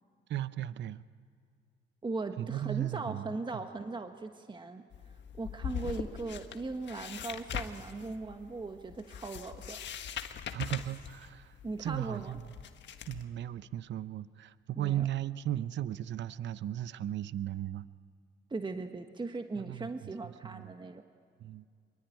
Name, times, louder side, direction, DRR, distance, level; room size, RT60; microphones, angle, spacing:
voice 1, 0.3-1.0 2.4-3.6 10.5-12.5 13.1-17.9 19.6-20.7 21.4-21.6, right 12 dB, 65° right, 15 dB, 0.7 m, -36 dB
voice 2, 2.0-4.8 5.4-9.8 11.6-12.4 14.8-15.1 18.5-21.0, right 3 dB, 25° right, 6 dB, 1.4 m, -39 dB
sound 1, 4.9-13.2, left 8 dB, 65° left, 1.6 m, -42 dB
25.0 x 23.5 x 9.3 m, 2.2 s
cardioid pair, 90°, 20 cm